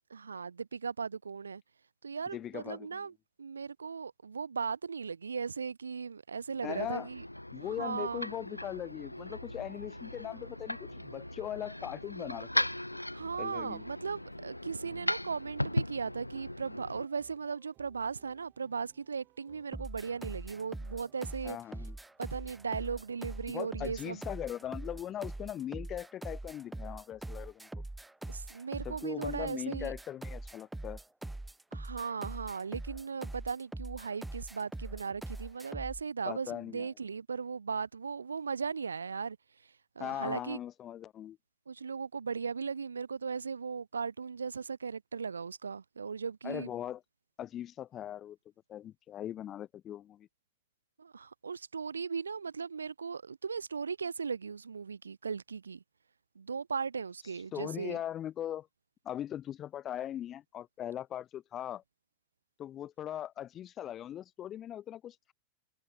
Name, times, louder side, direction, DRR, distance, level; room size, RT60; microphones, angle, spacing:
voice 1, 0.1-1.6 2.0-3.1 3.4-7.2 7.5-8.3 13.1-21.6 22.2-24.2 28.3-29.9 31.7-39.4 40.0-40.6 41.7-46.7 51.0-55.8 56.4-58.0, right 5 dB, 75° right, 0.5 m, -37 dB
voice 2, 2.3-3.1 6.6-7.1 7.5-12.7 13.4-13.8 21.4-22.0 23.5-27.7 28.8-31.0 36.2-36.9 40.0-41.4 46.4-47.0 47.4-48.4 48.7-50.3 57.5-58.7 59.0-61.8 62.6-65.3, left 11 dB, 30° left, 2.6 m, -40 dB
sound 1, 6.5-17.1, left 1 dB, 85° left, 0.4 m, -38 dB
sound 2, 8.0-25.7, right 17 dB, 35° right, 5.0 m, -65 dB
sound 3, 19.7-36.0, right 2 dB, 5° right, 1.1 m, -42 dB
figure-of-eight pair, 90°, 0 cm